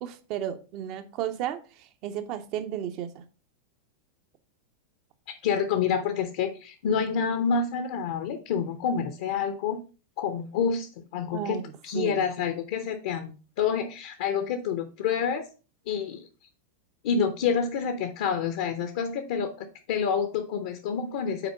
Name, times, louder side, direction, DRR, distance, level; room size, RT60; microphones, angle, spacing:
voice 1, 0.0-3.2 11.3-12.3, right 10 dB, 40° right, 9 dB, 0.9 m, -34 dB
voice 2, 5.3-9.8 10.2-15.4 15.9-16.3 17.0-21.5, left 6 dB, 55° left, 8 dB, 0.8 m, -28 dB
5.9 x 4.4 x 5.8 m, 0.35 s
figure-of-eight pair, 90°, 0 cm